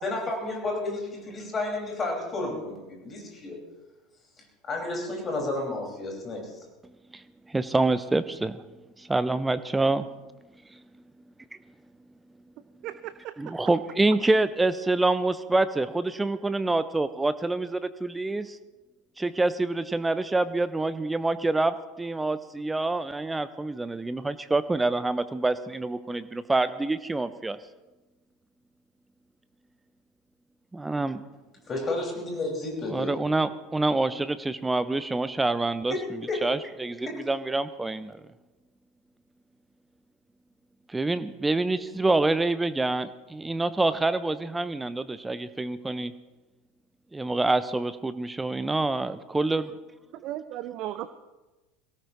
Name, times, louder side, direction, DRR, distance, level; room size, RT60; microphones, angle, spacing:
voice 1, 0.0-3.6 4.6-6.6 31.7-33.2 35.9-36.0 36.3-36.5 37.1-37.2, left 2 dB, 25° left, -1 dB, 5.5 m, -31 dB
voice 2, 7.1-8.6 9.0-10.1 10.7-10.8 13.4-18.6 19.2-27.6 30.7-31.2 32.9-35.9 36.4-38.2 40.9-46.1 47.1-49.7, right 2 dB, 10° right, 13 dB, 0.6 m, -26 dB
voice 3, 12.8-13.5 50.1-51.1, right 13 dB, 45° right, 13 dB, 0.6 m, -36 dB
23.0 x 17.5 x 3.1 m, 1.1 s
figure-of-eight pair, 75°, 0 cm